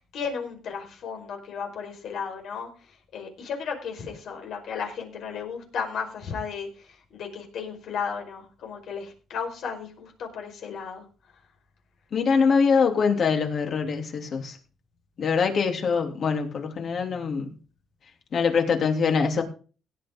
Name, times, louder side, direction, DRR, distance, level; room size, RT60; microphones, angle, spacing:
voice 1, 0.1-11.0, left 6 dB, 75° left, 3 dB, 4.9 m, -34 dB
voice 2, 12.1-14.6 15.2-17.5 18.3-19.4, left 5 dB, 55° left, 4 dB, 3.3 m, -23 dB
17.0 x 9.0 x 3.8 m, 0.36 s
cardioid pair, 90°, 0 cm